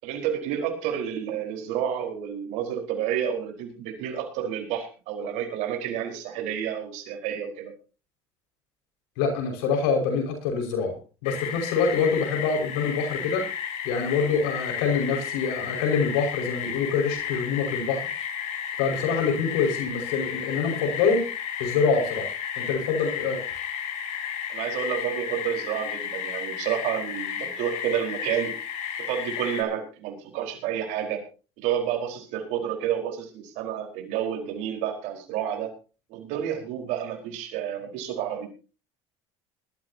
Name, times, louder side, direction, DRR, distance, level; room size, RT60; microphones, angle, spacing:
voice 1, 0.0-7.7 24.5-28.5 29.0-31.2 31.6-35.7 36.1-38.5, right 9 dB, 75° right, 3 dB, 4.6 m, -30 dB
voice 2, 9.2-11.0 11.2-13.5 13.8-18.1 18.8-21.3 21.6-22.3 22.6-23.4, left 5 dB, 90° left, 3 dB, 5.6 m, -25 dB
sound 1, 11.2-29.6, left 8 dB, 65° left, 3.4 m, -33 dB
21.0 x 13.0 x 2.9 m, 0.35 s
supercardioid pair, 105°, 12 cm